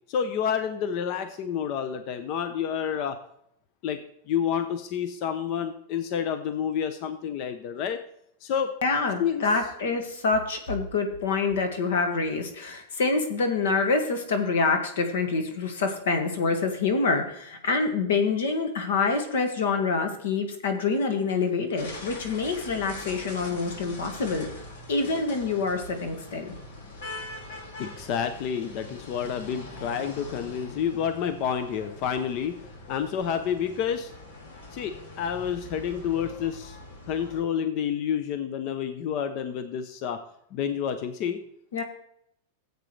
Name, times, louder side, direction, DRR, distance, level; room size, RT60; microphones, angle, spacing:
voice 1, 0.1-3.2 3.8-4.0 4.3-8.0 8.4-8.7 9.2-9.4 27.8-34.1 34.7-36.8 37.1-40.2 40.5-41.4, left 8 dB, 35° left, 9 dB, 0.6 m, -29 dB
voice 2, 8.8-24.5 24.9-26.5 41.7-41.8, left 4 dB, 85° left, 6 dB, 1.9 m, -26 dB
sound 1, 21.8-37.4, left 2 dB, 60° left, 2.5 m, -43 dB
13.5 x 8.1 x 3.3 m, 0.74 s
supercardioid pair, 165°, 0 cm